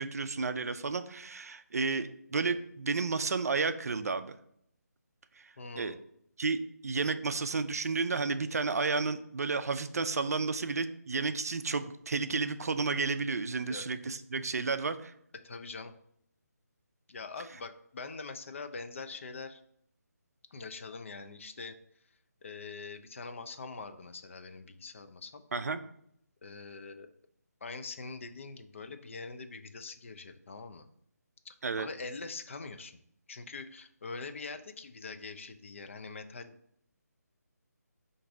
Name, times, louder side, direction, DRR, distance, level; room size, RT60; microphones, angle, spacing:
voice 1, 0.0-4.3 5.8-5.9 6.4-15.1 25.5-25.8 31.6-31.9, right 4 dB, 65° right, 11 dB, 0.3 m, -32 dB
voice 2, 5.6-6.0 13.7-13.9 15.4-15.9 17.1-19.6 20.5-21.7 22.4-25.4 26.4-27.1 27.6-30.9 31.4-33.0 33.3-36.6, left 4 dB, 45° left, 9 dB, 0.4 m, -43 dB
3.8 x 2.6 x 4.6 m, 0.70 s
figure-of-eight pair, 155°, 9 cm